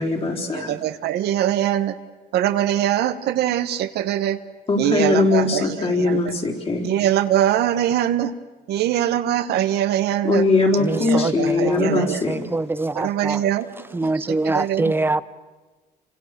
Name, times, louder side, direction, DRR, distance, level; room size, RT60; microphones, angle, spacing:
voice 1, 0.0-0.8 4.7-6.9 10.2-12.4, left 3 dB, 35° left, 1 dB, 4.2 m, -21 dB
voice 2, 0.5-1.9 2.3-4.4 4.8-6.2 6.8-8.3 8.7-10.4 11.0-12.2 12.9-13.7 14.0-14.9, right 11 dB, 75° right, 10 dB, 1.4 m, -22 dB
voice 3, 10.8-13.4 13.9-15.2, right 2 dB, 15° right, 15 dB, 0.8 m, -24 dB
29.0 x 26.0 x 6.9 m, 1.3 s
cardioid pair, 110°, 17 cm